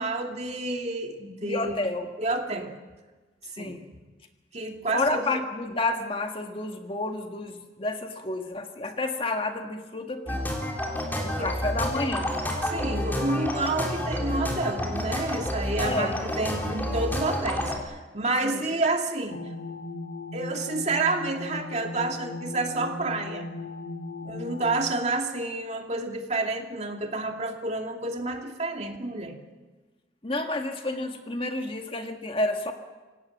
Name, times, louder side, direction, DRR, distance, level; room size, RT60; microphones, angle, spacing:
voice 1, 0.0-1.8 2.2-2.7 3.5-3.8 4.5-5.4 11.4-11.5 12.6-19.4 20.3-23.5 24.2-29.4, right 2 dB, 40° right, 3 dB, 2.6 m, -29 dB
voice 2, 1.4-2.1 3.6-3.8 4.9-10.5 11.2-12.4 15.8-16.1 18.4-18.8 30.2-32.7, left 2 dB, 30° left, 4 dB, 1.8 m, -30 dB
sound 1, 10.3-17.8, left 1 dB, 10° left, 3.7 m, -29 dB
sound 2, 19.3-24.9, left 3 dB, 70° left, 2.3 m, -37 dB
27.0 x 17.5 x 7.3 m, 1.2 s
head